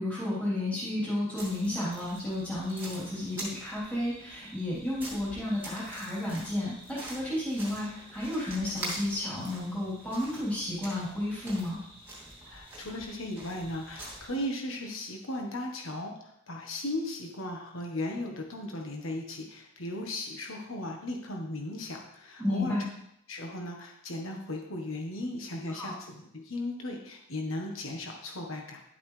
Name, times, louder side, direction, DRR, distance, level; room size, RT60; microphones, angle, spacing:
voice 1, 0.0-11.8 22.4-22.8 25.7-25.9, left 1 dB, 5° left, -10 dB, 3.7 m, -32 dB
sound 1, 1.4-14.5, right 1 dB, 10° right, 2.4 m, -45 dB
voice 2, 12.4-22.8 23.3-28.8, left 1 dB, 70° left, 1 dB, 1.3 m, -36 dB
11.0 x 8.0 x 3.3 m, 0.75 s
head